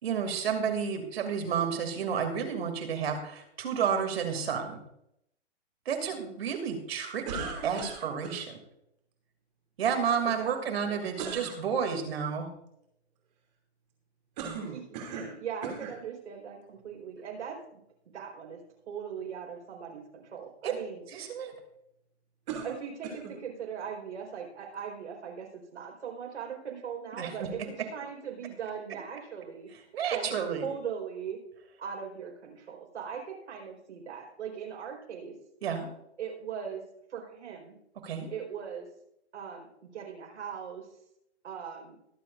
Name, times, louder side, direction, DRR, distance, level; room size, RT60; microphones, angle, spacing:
voice 1, 0.0-4.8 5.9-8.6 9.8-12.5 20.6-20.7 21.1-21.5 27.1-27.3 29.9-30.7 35.6-35.9 38.0-38.3, right 7 dB, 65° right, 5 dB, 2.8 m, -31 dB
sound 1, 7.2-8.4 11.2-11.6 14.4-15.3 15.6-16.0 16.8-16.9 22.5-23.4, right 5 dB, 40° right, 2.8 m, -38 dB
voice 2, 9.8-11.0 14.7-14.8 15.1-17.8 18.0-18.6 18.9-21.0 22.6-27.6 27.9-29.7 30.1-30.3 30.6-31.4 31.8-35.3 36.2-36.8 37.1-37.7 38.3-38.9 39.3-40.9 41.4-42.0, right 7 dB, 85° right, 1 dB, 4.5 m, -40 dB
22.5 x 7.8 x 2.6 m, 0.78 s
hypercardioid pair, 170°, 33 cm